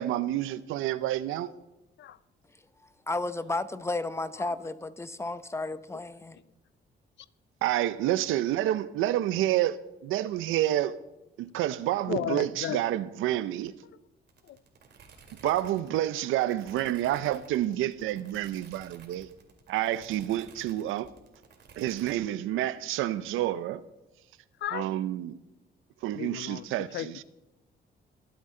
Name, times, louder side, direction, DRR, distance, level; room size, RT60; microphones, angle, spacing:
voice 1, 0.0-1.5 7.6-9.8 10.0-10.9 11.4-13.7 15.4-19.3 19.7-21.1 21.8-23.8 24.7-25.3 26.0-27.1, right 13 dB, 90° right, 0.6 m, -29 dB
voice 2, 3.1-6.4, left 2 dB, 15° left, 0.7 m, -33 dB
voice 3, 12.1-12.8 14.4-14.6 15.4-15.5 23.5-23.6 24.6-24.9 26.1-27.2, left 11 dB, 65° left, 0.6 m, -35 dB
sound 1, 14.3-22.1, right 5 dB, 60° right, 2.5 m, -54 dB
22.0 x 8.0 x 3.8 m
cardioid pair, 90°, 20 cm